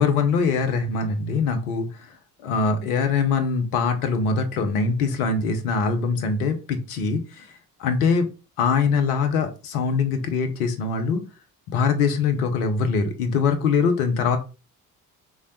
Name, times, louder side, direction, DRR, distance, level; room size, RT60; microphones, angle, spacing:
voice 1, 0.0-2.1 2.4-7.5 7.8-8.3 8.6-11.2 11.7-14.4, left 5 dB, 70° left, 7 dB, 0.7 m, -23 dB
3.2 x 2.1 x 2.6 m, 0.32 s
figure-of-eight pair, 50°, 45 cm